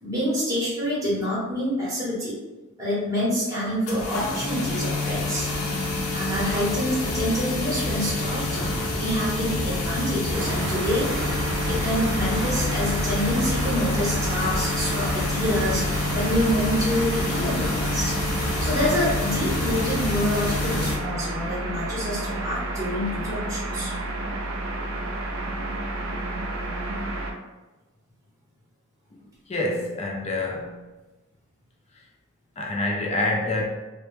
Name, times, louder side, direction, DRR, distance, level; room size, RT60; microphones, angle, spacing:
voice 1, 0.0-2.4 2.8-5.5 6.1-8.6 9.0-11.2 11.6-18.2 18.6-23.9, equal, 15° right, -8 dB, 0.8 m, -27 dB
sound 1, 3.9-21.0, left 2 dB, 85° left, 0.5 m, -27 dB
sound 2, 10.3-27.3, right 2 dB, 70° right, 0.4 m, -31 dB
voice 2, 29.5-30.8 32.6-33.6, left 2 dB, 30° left, -1 dB, 0.4 m, -27 dB
2.1 x 2.0 x 3.0 m, 1.1 s
head